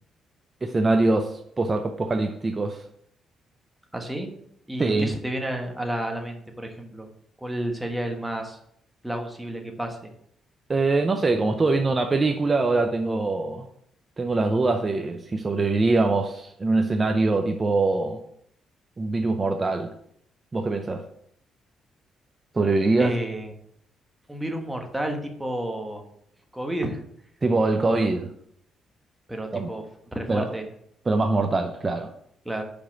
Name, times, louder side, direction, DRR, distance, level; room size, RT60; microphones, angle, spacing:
voice 1, 0.6-2.8 4.8-5.1 10.7-13.7 14.2-18.2 19.0-19.9 20.5-21.1 22.5-23.2 27.4-28.3 29.5-29.7 30.3-30.5 31.1-32.1, right 3 dB, 30° right, 5 dB, 0.6 m, -23 dB
voice 2, 3.9-4.3 4.7-7.1 7.4-8.6 9.0-10.1 23.0-23.5 24.3-26.0 26.5-27.0 27.8-28.0 29.3-29.8 30.1-30.6 32.4-32.6, right 1 dB, 10° right, 3 dB, 1.4 m, -31 dB
5.2 x 5.1 x 5.9 m, 0.70 s
cardioid pair, 90°, 0 cm